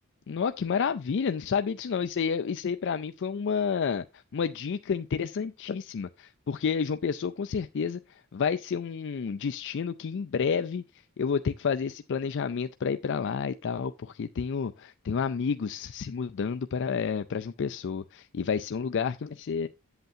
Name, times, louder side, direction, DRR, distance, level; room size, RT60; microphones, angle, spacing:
voice 1, 0.3-4.0 4.3-8.0 8.3-10.8 11.2-19.7, left 6 dB, 55° left, 0.4 m, -30 dB
8.8 x 8.0 x 2.7 m
head